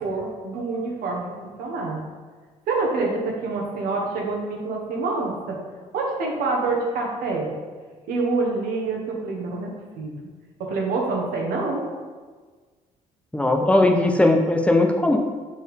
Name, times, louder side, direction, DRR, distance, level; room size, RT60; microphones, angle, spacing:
voice 1, 0.0-1.3 1.6-2.0 2.7-5.6 5.9-7.5 8.1-10.1 10.6-11.8, right 3 dB, 80° right, -1 dB, 1.4 m, -26 dB
voice 2, 13.3-15.2, left 2 dB, 10° left, 4 dB, 0.9 m, -18 dB
6.3 x 4.5 x 3.6 m, 1.5 s
supercardioid pair, 65°, 15 cm